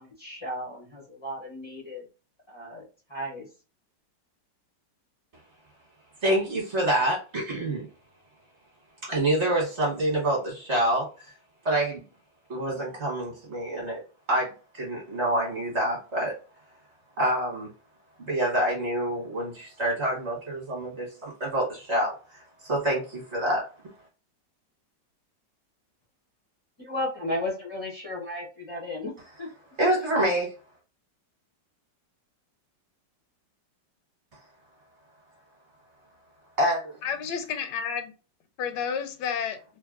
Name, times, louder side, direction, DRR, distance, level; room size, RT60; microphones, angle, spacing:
voice 1, 0.0-2.0 2.5-2.8 3.1-3.5 26.8-29.1 29.4-29.5, left 1 dB, 35° left, 0.4 m, -34 dB
voice 2, 6.2-7.9 9.0-11.3 11.6-12.0 12.5-14.0 14.3-16.3 17.2-17.7 18.2-23.6 29.8-30.5 36.6-37.0, right 1 dB, 45° right, 1.3 m, -27 dB
voice 3, 37.0-38.1 38.6-39.6, left 7 dB, 80° left, 1.2 m, -30 dB
3.3 x 2.1 x 2.4 m
omnidirectional pair, 1.9 m